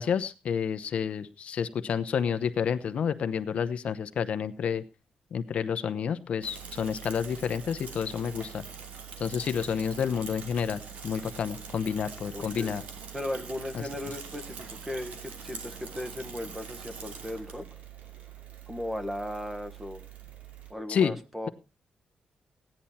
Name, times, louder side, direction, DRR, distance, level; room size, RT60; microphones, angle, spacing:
voice 1, 0.0-4.8 5.3-8.6 9.2-12.8 13.7-13.9 20.9-21.1, left 7 dB, 60° left, 11 dB, 0.8 m, -29 dB
Bicycle / Mechanisms, 6.4-20.7, right 6 dB, 85° right, 2.7 m, -44 dB
voice 2, 12.3-12.8 13.1-17.7 18.7-20.0 20.7-21.5, left 1 dB, 10° right, 8 dB, 1.2 m, -37 dB
15.5 x 10.5 x 4.3 m, 0.29 s
wide cardioid pair, 150°, 2 cm